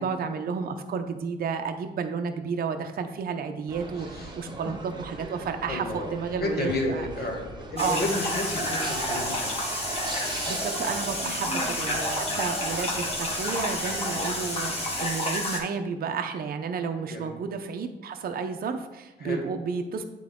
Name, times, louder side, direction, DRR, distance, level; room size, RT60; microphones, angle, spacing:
voice 1, 0.0-7.1 7.8-8.0 10.5-20.0, right 5 dB, 50° right, 6 dB, 0.6 m, -31 dB
sound 1, 3.7-15.1, right 2 dB, 20° right, 1.0 m, -37 dB
voice 2, 3.9-4.3 4.6-4.7 5.7-7.5 7.7-9.5 11.2-11.4 14.2-14.3 17.1-17.3 19.2-19.4, left 2 dB, 55° left, 1 dB, 1.6 m, -32 dB
sound 2, 7.8-15.6, left 1 dB, 30° left, 1.5 m, -30 dB
8.3 x 3.8 x 3.6 m, 1.0 s
cardioid pair, 90°, 20 cm